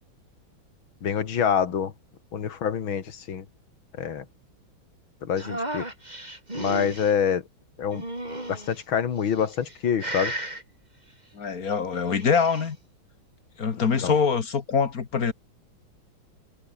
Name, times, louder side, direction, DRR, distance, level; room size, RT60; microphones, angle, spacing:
voice 1, 1.0-1.9 2.3-3.4 4.0-4.2 5.3-5.9 6.6-7.4 7.8-8.0 8.5-10.3 14.0-14.2, left 7 dB, 80° left, 2.6 m, -26 dB
sound 1, 5.4-7.1 7.9-8.8 9.4-9.7 10.0-10.6 11.9-12.7, right 1 dB, 20° right, 5.8 m, -34 dB
voice 2, 11.3-12.8 13.6-15.3, left 5 dB, 45° left, 2.1 m, -24 dB
omnidirectional pair, 2.2 m